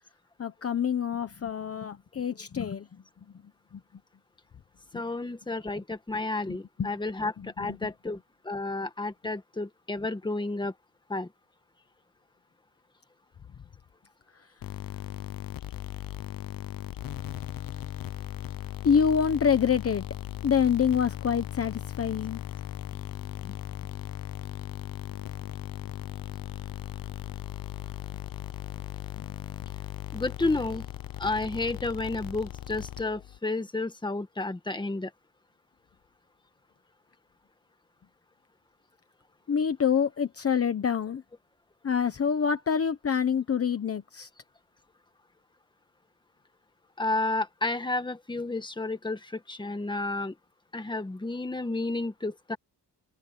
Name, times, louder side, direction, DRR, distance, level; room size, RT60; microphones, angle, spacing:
voice 1, 0.4-3.0 3.7-3.8 4.9-5.0 6.5-6.9 7.4-7.8 18.8-20.0 20.4-22.4 23.4-23.6 29.2-29.3 39.5-41.2 41.8-44.3, left 7 dB, 35° left, 1.1 m, -26 dB
voice 2, 4.9-8.2 8.4-10.7 11.1-11.3 30.1-30.9 31.2-35.1 47.0-50.3 50.7-52.6, left 2 dB, 10° left, 1.6 m, -31 dB
sound 1, 14.6-33.4, left 12 dB, 55° left, 0.8 m, -38 dB
open air
wide cardioid pair, 165°, 40 cm